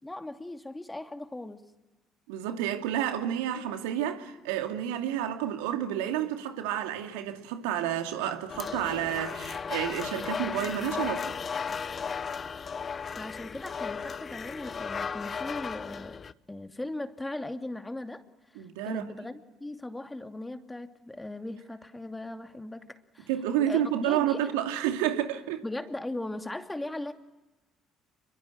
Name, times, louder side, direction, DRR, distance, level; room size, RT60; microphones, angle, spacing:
voice 1, 0.0-1.6 13.2-16.2 16.5-18.2 18.5-23.3 23.7-24.4 25.6-27.1, left 2 dB, 15° left, 2.6 m, -38 dB
voice 2, 2.3-11.3 18.6-19.0 23.3-25.6, right 11 dB, 80° right, 2.5 m, -30 dB
sound 1, 8.5-16.3, left 6 dB, 40° left, 1.0 m, -35 dB
28.5 x 23.0 x 9.0 m
hypercardioid pair, 55°, 0 cm